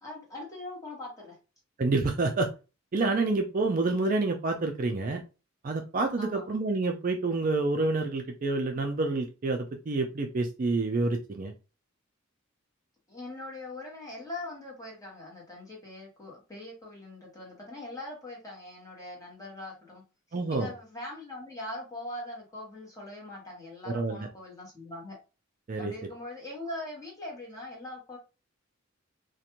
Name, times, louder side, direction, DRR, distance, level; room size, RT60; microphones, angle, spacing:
voice 1, 0.0-1.4 6.2-6.4 13.1-20.0 20.5-25.2 25.8-28.2, left 1 dB, 15° left, -3 dB, 1.1 m, -41 dB
voice 2, 1.8-2.5 2.9-5.2 5.6-11.5 20.3-20.7 23.9-24.3 25.7-25.9, right 3 dB, 40° right, 3 dB, 0.4 m, -28 dB
2.5 x 2.2 x 2.9 m, 0.31 s
head